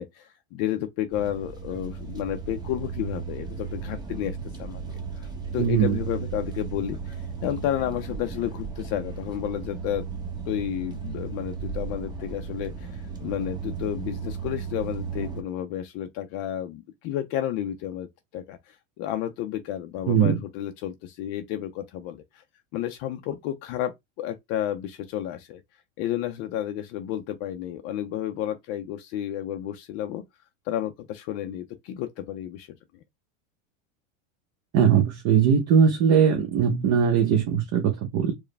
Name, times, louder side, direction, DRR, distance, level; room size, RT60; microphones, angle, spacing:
voice 1, 0.0-4.8 5.1-10.0 10.5-18.1 18.3-22.4 22.7-25.6 26.0-30.2 30.7-32.8, left 11 dB, 40° left, 0.5 m, -31 dB
sound 1, 1.1-15.4, right 5 dB, 10° right, 0.8 m, -35 dB
voice 2, 5.6-6.0 20.1-20.4 34.7-38.3, right 7 dB, 45° right, 0.9 m, -20 dB
4.7 x 2.2 x 3.3 m
supercardioid pair, 135°, 40 cm